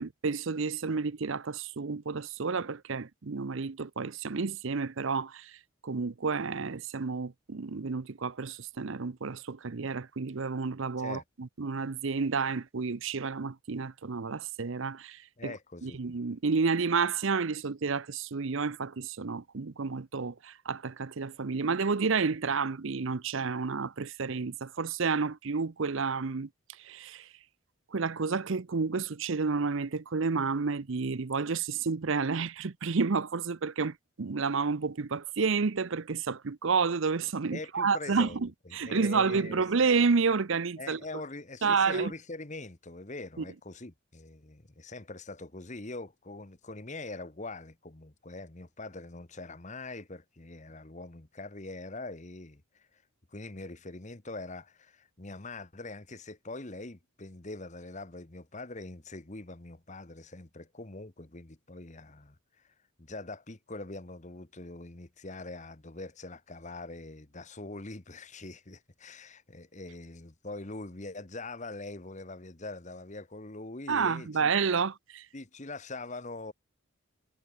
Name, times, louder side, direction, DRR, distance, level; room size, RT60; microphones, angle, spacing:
voice 1, 0.0-5.6 5.8-15.5 15.8-26.5 26.8-27.3 27.9-41.0 41.6-42.1 43.4-43.5 73.9-75.3, right 5 dB, 60° right, 0.6 m, -30 dB
voice 2, 15.4-16.0 37.5-39.6 40.8-53.0 53.3-74.5 75.3-76.5, left 2 dB, 35° left, 1.4 m, -43 dB
head